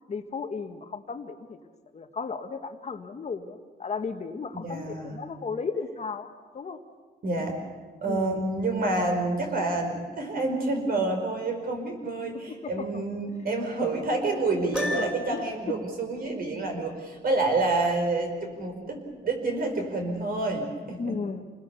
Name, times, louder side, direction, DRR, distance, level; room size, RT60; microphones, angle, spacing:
voice 1, 0.1-1.6 1.9-6.8 8.0-8.4 12.5-13.0 14.9-15.4 21.0-21.4, left 5 dB, 40° left, 6 dB, 1.4 m, -35 dB
voice 2, 4.5-5.2 7.2-7.5 8.0-21.1, right 2 dB, 55° right, 3 dB, 5.1 m, -28 dB
Piano, 14.7-15.6, left 1 dB, 5° right, 4.4 m, -32 dB
27.5 x 20.5 x 7.0 m, 1.5 s
cardioid pair, 135°, 18 cm